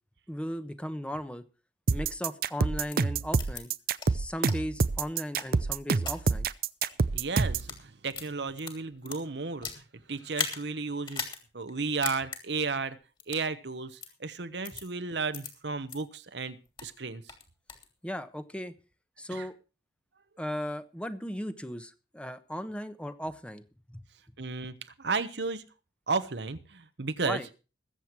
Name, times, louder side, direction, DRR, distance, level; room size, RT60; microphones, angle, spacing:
voice 1, 0.3-1.4 1.9-3.7 4.1-6.5 18.0-18.7 19.2-19.5 20.4-23.6 23.9-24.0 27.2-27.5, equal, 5° left, 10 dB, 1.0 m, -36 dB
sound 1, 1.9-7.7, right 4 dB, 55° right, 0.6 m, -27 dB
sound 2, 2.9-3.0 3.4-3.6 4.0-4.1 4.5-4.6 5.1-6.1 6.7-6.9 7.5-7.8 8.1-9.8 10.3-10.6 11.0-11.4 11.7-11.8 12.0-12.4 13.2-13.5 14.0-14.1 14.6-14.8 15.3-15.5 15.9-16.0 16.4-16.9 17.3-17.9, left 5 dB, 30° left, 2.9 m, -37 dB
voice 2, 7.1-11.2 11.5-13.0 13.3-17.2 19.3-19.5 24.4-25.7 26.1-27.4, right 4 dB, 70° right, 11 dB, 1.1 m, -33 dB
21.0 x 7.9 x 4.7 m, 0.33 s
head